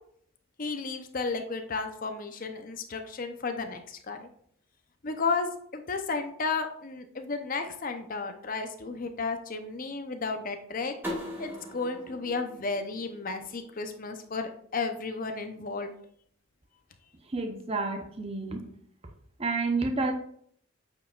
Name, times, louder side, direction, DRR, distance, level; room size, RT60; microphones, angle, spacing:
voice 1, 0.6-4.3 5.0-11.0 11.4-15.9, left 4 dB, 40° left, 6 dB, 0.7 m, -33 dB
sound 1, 11.0-13.8, left 1 dB, 10° right, 1.5 m, -40 dB
voice 2, 17.3-18.7 19.4-20.1, right 3 dB, 30° right, 4 dB, 0.7 m, -30 dB
8.5 x 4.9 x 2.4 m, 0.63 s
head